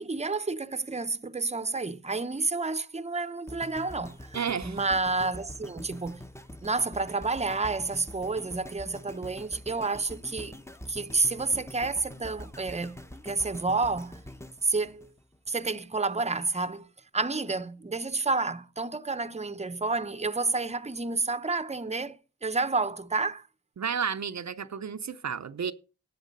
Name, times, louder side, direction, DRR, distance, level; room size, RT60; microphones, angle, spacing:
voice 1, 0.0-4.4 4.6-6.2 6.6-10.6 10.9-14.2 14.6-15.1 15.5-23.5, right 3 dB, 20° right, 0.8 m, -30 dB
sound 1, 3.5-15.7 16.2-16.3, left 1 dB, 10° left, 0.9 m, -45 dB
voice 2, 4.3-4.8 23.8-25.7, right 7 dB, 65° right, 0.6 m, -32 dB
10.5 x 8.1 x 5.2 m
cardioid pair, 45°, 29 cm